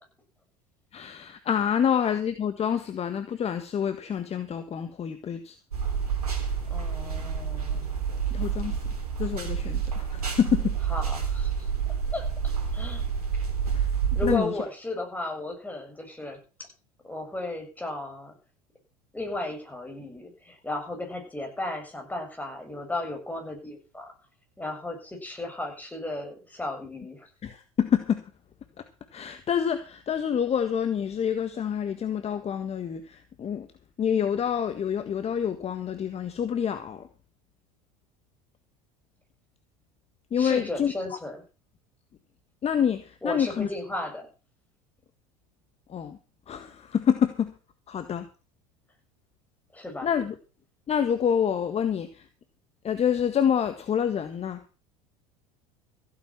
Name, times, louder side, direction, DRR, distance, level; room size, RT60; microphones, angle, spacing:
voice 1, 0.9-5.5 8.3-8.8 9.2-10.8 13.7-13.9 14.2-14.5 27.4-28.2 29.1-33.7 34.0-37.1 40.3-40.9 42.6-43.7 45.9-46.2 46.5-47.5 47.9-48.3 50.0-50.3 50.9-52.3 52.8-54.8, left 8 dB, 35° left, 1.6 m, -27 dB
sound 1, 5.7-14.4, right 7 dB, 90° right, 3.4 m, -29 dB
voice 2, 6.7-7.9 10.9-13.1 14.1-16.7 17.0-18.3 19.1-24.1 24.6-27.3 40.4-41.4 43.2-44.3 49.7-50.1, left 2 dB, 10° left, 7.3 m, -35 dB
15.5 x 9.3 x 6.0 m
hypercardioid pair, 75°, 19 cm